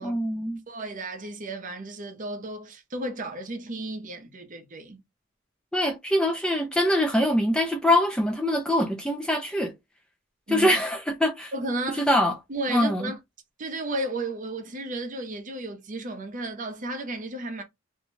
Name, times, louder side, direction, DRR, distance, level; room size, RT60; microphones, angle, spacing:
voice 1, 0.0-0.6 5.7-9.7 10.5-11.5 11.9-12.3 12.7-13.1, left 1 dB, 5° left, 0.3 m, -24 dB
voice 2, 0.7-5.0 10.5-10.7 11.5-12.1 12.5-13.2 13.6-17.6, right 2 dB, 40° right, 0.6 m, -33 dB
2.6 x 2.2 x 3.0 m
head